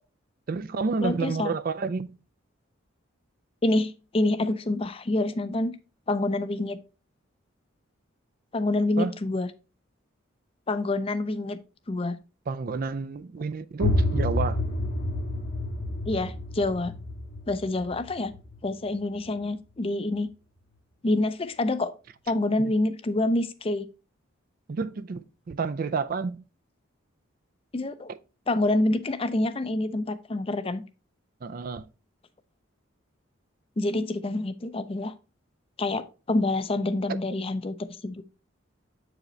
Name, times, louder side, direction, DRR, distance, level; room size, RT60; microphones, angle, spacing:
voice 1, 0.5-2.2 9.0-9.1 12.5-14.6 24.7-26.4 31.4-31.9, right 4 dB, 45° right, 0.4 m, -30 dB
voice 2, 1.0-1.5 3.6-5.8 6.1-6.8 8.5-9.5 10.7-11.6 11.9-12.2 16.1-16.9 17.5-18.3 18.6-20.3 21.0-21.9 22.3-23.9 27.7-28.1 28.5-30.8 33.8-35.1 35.8-38.2, left 2 dB, 30° left, 0.5 m, -27 dB
sound 1, 13.8-19.4, left 1 dB, 55° left, 1.0 m, -29 dB
7.7 x 4.9 x 3.1 m
head